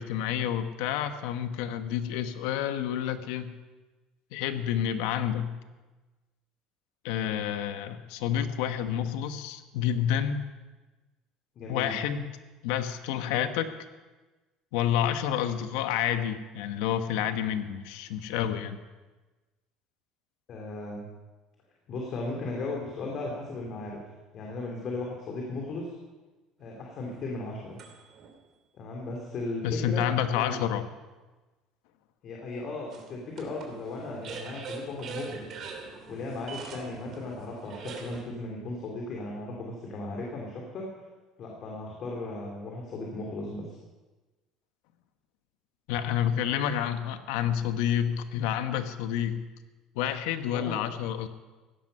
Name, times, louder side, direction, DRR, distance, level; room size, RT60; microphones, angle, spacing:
voice 1, 0.0-3.5 4.3-5.6 7.0-10.4 11.7-12.3 12.6-13.7 14.7-18.8 29.6-30.8 45.9-49.5 50.0-51.3, left 10 dB, 85° left, 9 dB, 1.1 m, -29 dB
voice 2, 11.5-11.9 20.5-21.1 21.9-24.0 24.3-26.0 26.6-27.8 28.7-30.6 32.2-35.5 36.1-40.9 41.4-43.8 50.5-50.8, left 2 dB, 50° left, -1 dB, 3.1 m, -36 dB
sound 1, 26.6-28.3 29.0-29.1 32.9-38.2, right 4 dB, 50° right, 3.2 m, -43 dB
16.0 x 12.5 x 5.5 m, 1.2 s
cardioid pair, 115°, 0 cm